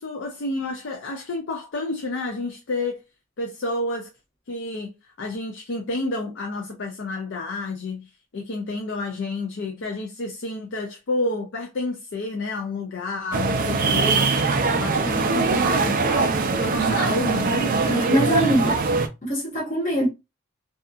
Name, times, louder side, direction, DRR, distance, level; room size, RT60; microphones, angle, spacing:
voice 1, 0.0-3.0 3.4-4.1 4.5-14.3 14.8-17.7, left 2 dB, 60° left, 0.5 m, -30 dB
sound 1, 13.3-19.1, right 4 dB, 40° right, 0.4 m, -22 dB
voice 2, 17.8-18.8 19.2-20.1, right 1 dB, 40° left, 0.9 m, -23 dB
2.7 x 2.4 x 2.4 m
head